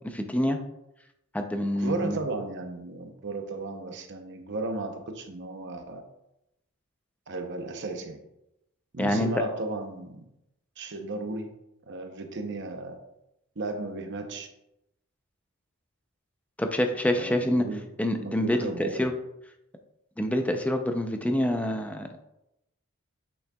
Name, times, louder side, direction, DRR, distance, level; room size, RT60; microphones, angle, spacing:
voice 1, 0.1-0.6 1.3-2.2 9.0-9.4 16.6-17.7 18.0-19.1 20.2-22.1, left 1 dB, 5° left, 5 dB, 0.5 m, -26 dB
voice 2, 1.8-6.0 7.3-8.2 8.9-10.2 10.8-11.5 11.9-13.0 13.6-14.5 17.1-17.9 18.2-19.1, right 3 dB, 55° right, 5 dB, 0.8 m, -35 dB
8.5 x 6.3 x 2.3 m, 0.86 s
head